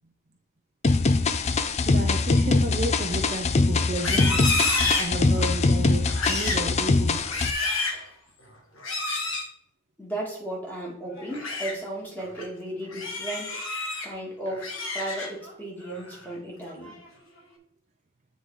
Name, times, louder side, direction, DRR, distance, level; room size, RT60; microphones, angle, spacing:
sound 1, 0.8-7.5, left 3 dB, 30° left, 0.4 m, -23 dB
voice 1, 1.9-4.4 4.8-7.2 7.9-8.1, right 2 dB, 35° right, 3 dB, 0.6 m, -32 dB
Livestock farm animals working animals, 3.9-5.6 6.0-6.7 7.1-8.0 8.8-9.5 11.2-11.7 12.2-12.4 12.9-14.1 14.5-15.5 15.9-16.2 16.6-17.1, left 3 dB, 70° left, 1.4 m, -29 dB
voice 2, 10.0-13.6 14.0-17.0, right 1 dB, 10° left, -3 dB, 2.0 m, -35 dB
8.0 x 4.0 x 4.7 m, 0.68 s
head